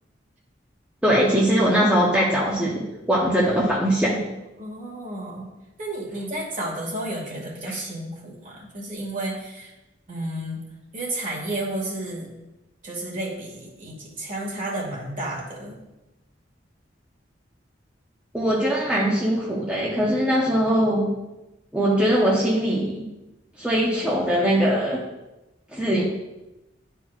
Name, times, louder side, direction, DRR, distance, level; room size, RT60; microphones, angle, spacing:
voice 1, 1.0-4.3 18.3-21.1 21.7-23.1 23.6-25.1 25.7-26.0, equal, 5° right, -6 dB, 0.9 m, -21 dB
voice 2, 4.6-5.5 5.8-9.7 10.1-10.6 10.9-12.3 12.8-15.8, right 1 dB, 45° right, -3 dB, 2.2 m, -32 dB
11.5 x 4.5 x 2.5 m, 0.98 s
head